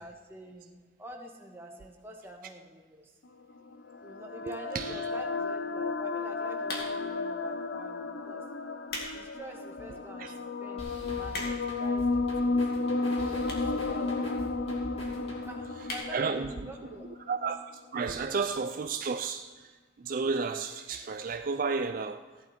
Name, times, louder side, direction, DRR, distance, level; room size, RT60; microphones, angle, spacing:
voice 1, 0.0-3.1 4.0-8.5 9.1-10.3 10.6-12.6 13.0-14.4 15.1-17.1 18.2-18.3, equal, 15° right, 1.6 m, -47 dB
sound 1, 3.5-17.6, left 3 dB, 80° left, 0.7 m, -33 dB
voice 2, 4.5-4.9 10.2-10.3 16.1-16.7 17.3-17.6 17.9-19.7 20.0-22.2, right 4 dB, 50° right, 0.4 m, -32 dB
sound 2, 6.6-7.2 7.9-8.1 8.6-9.2 9.6-9.7 10.3-10.4 10.6-10.7 10.9-11.8 12.6-12.7 13.4-13.8 14.1-14.2 14.4-14.5 14.7-14.8 15.1-15.3 15.8-16.1 16.5-16.6 16.8-16.9, left 2 dB, 60° left, 2.3 m, -38 dB
sound 3, 10.8-15.7, equal, 35° left, 2.5 m, -44 dB
15.0 x 11.0 x 4.5 m
head